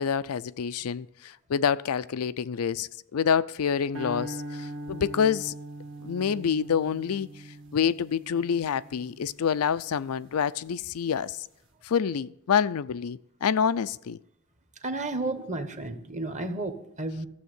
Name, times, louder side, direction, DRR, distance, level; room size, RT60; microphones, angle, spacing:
voice 1, 0.0-5.5 6.0-7.3 7.7-11.5 11.8-14.2, left 7 dB, 75° left, 0.4 m, -27 dB
sound 1, 3.9-10.3, right 1 dB, 60° right, 1.7 m, -41 dB
voice 2, 14.8-17.3, right 2 dB, 35° right, 1.2 m, -32 dB
14.0 x 7.2 x 8.2 m
head